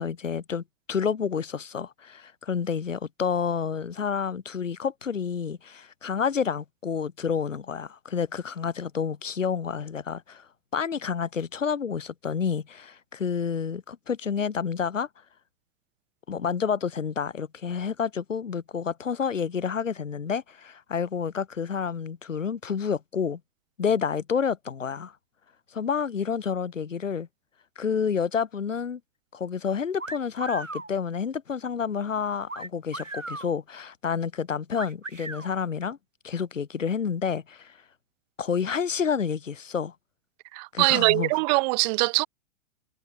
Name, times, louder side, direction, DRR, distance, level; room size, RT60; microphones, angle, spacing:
voice 1, 0.0-10.5 10.7-15.1 16.3-23.4 23.8-25.1 25.7-27.3 27.8-29.0 29.3-36.0 36.2-37.7 38.4-39.9 40.7-41.3, left 6 dB, 80° left, 1.1 m, -29 dB
sound 1, 30.0-30.9 32.5-33.5 34.8-35.5, right 2 dB, 85° right, 3.7 m, -37 dB
voice 2, 40.5-42.3, right 28 dB, 35° right, 0.8 m, -22 dB
figure-of-eight pair, 100°, 38 cm